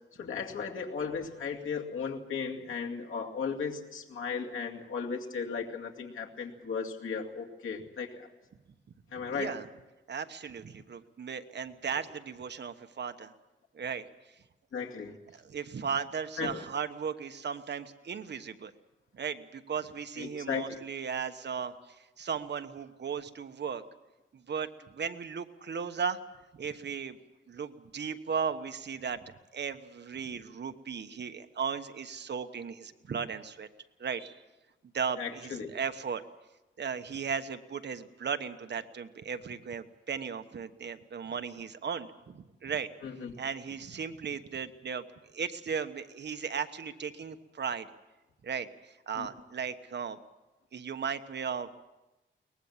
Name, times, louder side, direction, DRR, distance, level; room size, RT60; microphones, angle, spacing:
voice 1, 0.1-8.3 9.1-9.5 14.7-15.2 16.4-16.6 20.2-20.8 35.2-35.7 43.0-43.3 49.1-49.3, left 5 dB, 80° left, 1 dB, 2.3 m, -36 dB
voice 2, 9.2-9.7 10.1-13.3 13.7-14.3 15.3-18.7 19.1-23.8 24.3-26.2 26.5-27.2 27.5-29.2 29.5-33.7 34.0-34.4 34.9-36.2 36.8-42.9 43.4-45.0 45.3-47.9 48.4-50.2 50.7-51.7, right 6 dB, 60° right, 9 dB, 1.2 m, -36 dB
23.0 x 19.5 x 7.3 m, 1.0 s
wide cardioid pair, 110°, 20 cm